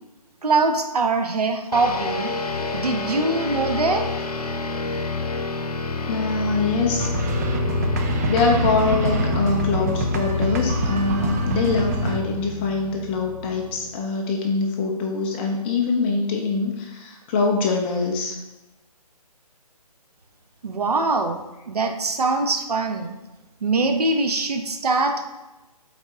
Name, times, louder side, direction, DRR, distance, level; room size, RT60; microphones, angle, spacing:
voice 1, 0.4-2.3 2.7-4.0 20.6-21.4 21.7-23.1 23.6-25.3, right 3 dB, 80° right, 5 dB, 1.1 m, -22 dB
sound 1, 1.7-13.9, left 4 dB, 70° left, 0.9 m, -28 dB
voice 2, 6.1-7.1 8.3-18.3, left 4 dB, 15° left, 1 dB, 0.7 m, -23 dB
sound 2, 7.0-12.2, right 3 dB, 25° right, 0.5 m, -26 dB
8.4 x 4.2 x 3.7 m, 1.0 s
hypercardioid pair, 155°, 20 cm